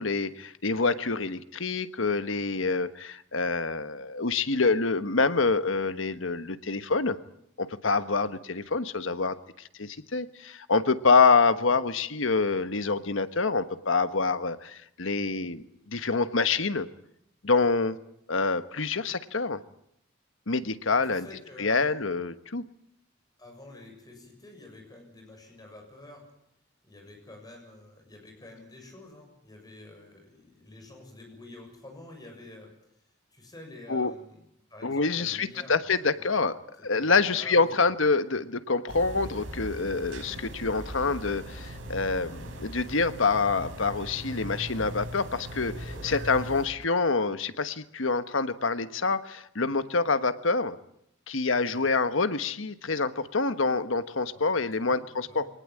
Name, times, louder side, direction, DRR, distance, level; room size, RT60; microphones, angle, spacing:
voice 1, 0.0-7.2 7.6-9.4 9.8-16.9 17.4-18.0 18.3-19.6 20.5-21.3 21.6-22.6 33.9-34.1 34.8-36.6 36.8-50.8 51.3-55.5, left 4 dB, 90° left, 11 dB, 1.3 m, -26 dB
voice 2, 20.9-22.0 23.4-26.2 26.8-32.7 33.3-34.4 34.7-35.8 36.2-36.4 36.8-37.9 51.7-51.8 54.3-55.5, left 2 dB, 20° left, 2 dB, 7.1 m, -48 dB
sound 1, 38.9-46.7, equal, 80° right, 5.3 m, -39 dB
24.5 x 19.0 x 8.7 m, 0.75 s
head